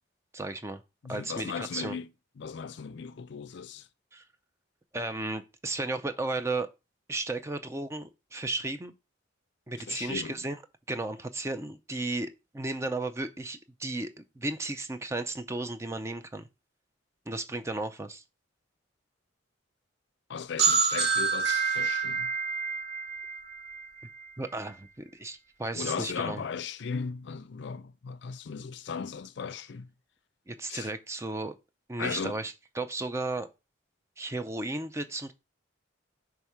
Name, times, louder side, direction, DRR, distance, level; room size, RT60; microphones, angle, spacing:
voice 1, 0.3-0.8 1.1-2.0 4.1-4.2 4.9-6.7 7.1-8.9 9.7-10.6 10.9-16.5 17.3-18.2 24.4-26.4 30.5-31.5 31.9-33.5 34.2-35.3, right 2 dB, 15° right, 0.4 m, -34 dB
voice 2, 1.0-2.1 2.4-3.9 9.9-10.4 20.3-22.3 25.8-29.9 30.7-30.9 32.0-32.4, left 6 dB, 60° left, 0.4 m, -37 dB
sound 1, 20.6-24.2, right 5 dB, 55° right, 0.8 m, -28 dB
5.6 x 3.6 x 4.6 m
head